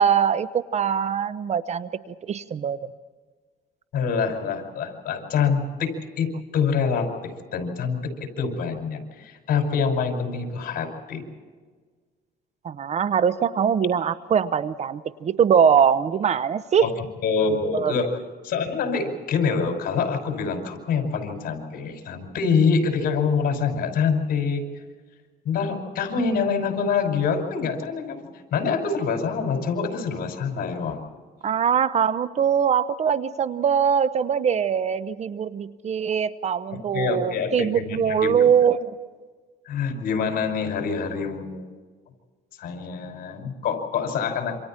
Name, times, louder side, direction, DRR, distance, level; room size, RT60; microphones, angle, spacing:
voice 1, 0.0-2.8 12.6-16.9 17.7-17.9 31.4-38.9, right 7 dB, 40° right, 14 dB, 0.8 m, -22 dB
voice 2, 3.9-11.3 16.8-16.9 17.2-18.1 18.4-24.7 25.4-28.2 28.5-31.0 36.9-38.5 39.7-41.8 42.6-44.5, left 5 dB, 60° left, 4 dB, 5.6 m, -25 dB
27.5 x 26.0 x 4.4 m, 1.5 s
cardioid pair, 110°, 17 cm